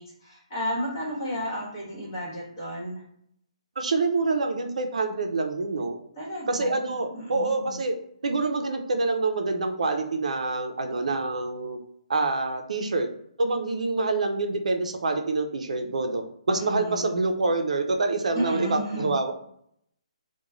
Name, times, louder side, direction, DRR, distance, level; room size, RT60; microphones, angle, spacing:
voice 1, 0.0-3.0 6.1-6.9 7.3-7.8 16.5-17.1 18.3-19.1, equal, 30° left, -6 dB, 1.3 m, -33 dB
voice 2, 3.8-6.0 6.5-8.0 8.2-11.8 12.1-13.1 13.4-19.3, right 3 dB, 75° right, 5 dB, 0.4 m, -26 dB
3.0 x 2.1 x 2.4 m, 0.68 s
hypercardioid pair, 170°, 4 cm